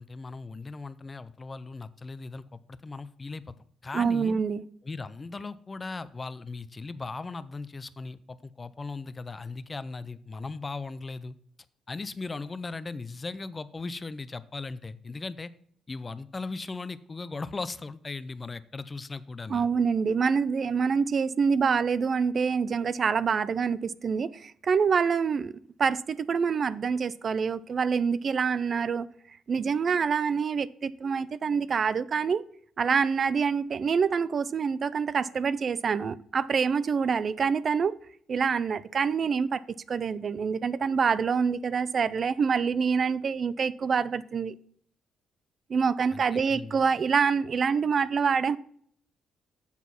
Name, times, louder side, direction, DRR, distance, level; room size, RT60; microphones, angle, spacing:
voice 1, 0.0-3.5 3.8-4.3 4.8-11.4 11.9-15.5 15.9-19.7 46.1-46.8, left 3 dB, 30° left, 0.5 m, -38 dB
voice 2, 3.9-4.6 19.5-29.1 29.5-32.4 32.8-38.0 38.3-44.5 45.7-48.6, right 6 dB, 45° right, 0.4 m, -26 dB
7.3 x 6.1 x 5.8 m
cardioid pair, 90°, 0 cm